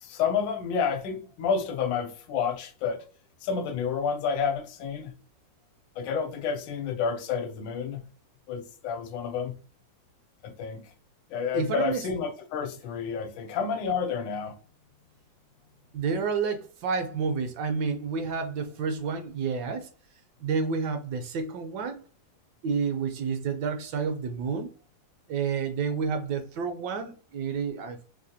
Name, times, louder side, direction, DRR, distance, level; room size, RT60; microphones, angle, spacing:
voice 1, 0.0-3.0 3.4-5.1 6.0-8.0 8.5-9.5 10.4-10.9 11.3-14.6, left 6 dB, 80° left, 1.3 m, -30 dB
voice 2, 11.5-12.0 15.9-19.9 20.4-22.0 22.6-24.7 25.3-28.0, right 5 dB, 75° right, 1.1 m, -30 dB
4.8 x 2.2 x 2.8 m
omnidirectional pair, 2.1 m